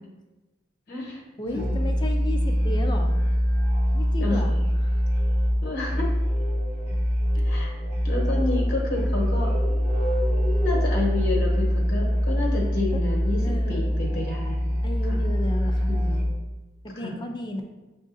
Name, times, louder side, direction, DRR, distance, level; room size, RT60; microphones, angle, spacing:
voice 1, 0.9-1.2 1.5-1.7 4.2-4.4 5.6-6.1 7.3-7.7 8.0-9.5 10.4-13.4 13.7-14.6 15.9-16.1 17.0-17.1, left 2 dB, 55° left, -3 dB, 1.2 m, -29 dB
voice 2, 1.4-3.1 3.9-4.9 12.9-13.0 13.4-13.9 14.8-15.9 16.8-17.6, left 1 dB, 25° left, 3 dB, 0.4 m, -34 dB
Musical instrument, 1.4-16.5, equal, 10° right, 1.1 m, -24 dB
6.2 x 2.5 x 2.6 m, 1.1 s
head